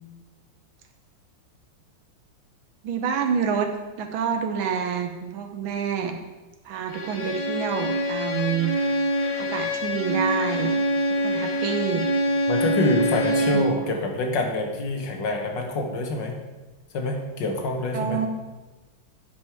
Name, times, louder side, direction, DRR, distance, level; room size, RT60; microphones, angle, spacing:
voice 1, 2.8-3.7 4.0-6.1 6.6-8.7 9.4-10.7 11.2-12.1 13.5-13.7 17.9-18.3, right 7 dB, 80° right, 5 dB, 1.6 m, -27 dB
Bowed string instrument, 6.9-13.8, equal, 50° left, 1.5 m, -25 dB
voice 2, 12.5-16.4 16.9-18.2, left 2 dB, 65° left, 2 dB, 1.7 m, -26 dB
8.8 x 5.4 x 4.6 m, 1.2 s
omnidirectional pair, 2.2 m